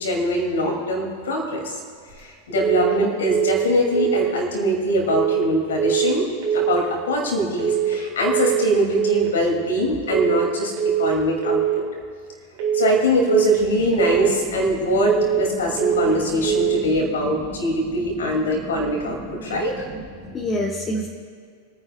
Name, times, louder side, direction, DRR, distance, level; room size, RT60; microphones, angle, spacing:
voice 1, 0.0-1.8 2.2-6.3 6.5-10.7 11.0-11.8 12.7-19.8, equal, 65° left, 0 dB, 2.6 m, -22 dB
sound 1, 2.6-3.0 3.3-3.7 3.9-4.3 5.1-5.5 5.8-6.2 6.4-6.8 7.6-8.0 8.3-8.7 8.9-9.3 10.1-10.5 10.8-11.2 11.4-11.8 12.6-13.0 13.3-13.7 13.9-14.3 15.1-15.5 15.8-16.2 16.4-16.8, right 9 dB, 55° right, 3.6 m, -22 dB
voice 2, 15.6-21.1, equal, 20° left, -2 dB, 1.6 m, -33 dB
28.5 x 9.7 x 2.4 m, 2.1 s
figure-of-eight pair, 90°, 0 cm